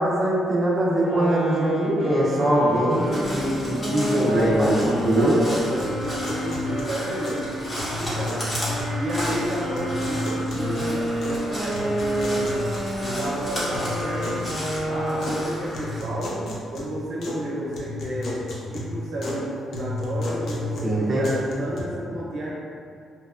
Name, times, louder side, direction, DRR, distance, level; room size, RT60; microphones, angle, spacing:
voice 1, 0.0-5.4 20.8-21.3, right 1 dB, 30° right, -7 dB, 0.5 m, -22 dB
sound 1, 1.0-8.0 8.6-15.8, equal, 90° left, 1.5 m, -30 dB
Crow, 2.9-16.0, equal, 30° left, 0.8 m, -35 dB
voice 2, 4.0-8.5 8.9-12.5 13.0-14.6 14.9-18.4 18.7-22.5, equal, 75° right, -6 dB, 0.6 m, -31 dB
sound 2, 5.8-7.5 7.8-9.5 9.8-11.4 11.7-13.4 13.7-15.4 15.7-17.4 17.7-19.4 19.7-21.8, left 1 dB, 65° left, 0.4 m, -33 dB
2.8 x 2.1 x 2.4 m, 2.3 s
cardioid pair, 125°, 0 cm